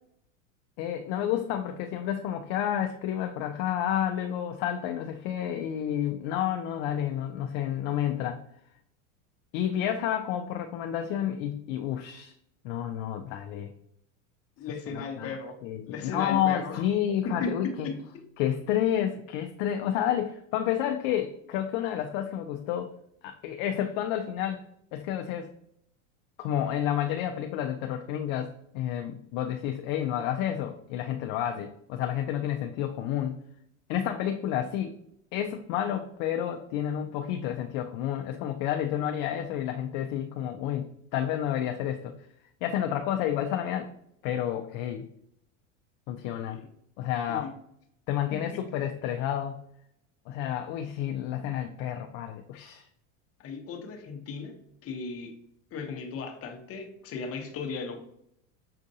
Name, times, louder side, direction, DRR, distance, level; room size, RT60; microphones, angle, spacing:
voice 1, 0.8-8.4 9.5-12.3 12.6-13.7 14.9-15.3 15.6-18.0 18.4-22.9 23.2-24.6 24.9-25.5 26.4-33.4 33.9-34.9 35.3-42.1 42.6-43.9 44.2-45.0 46.1-46.6 47.0-47.5 48.1-49.6 50.3-52.9, left 10 dB, 55° left, 5 dB, 0.5 m, -30 dB
voice 2, 14.6-16.9 17.2-18.3 46.5-46.7 47.3-47.5 48.3-48.7 53.4-55.4 55.7-58.0, left 4 dB, 35° left, 4 dB, 0.9 m, -36 dB
6.4 x 2.5 x 2.7 m, 0.72 s
supercardioid pair, 110°, 38 cm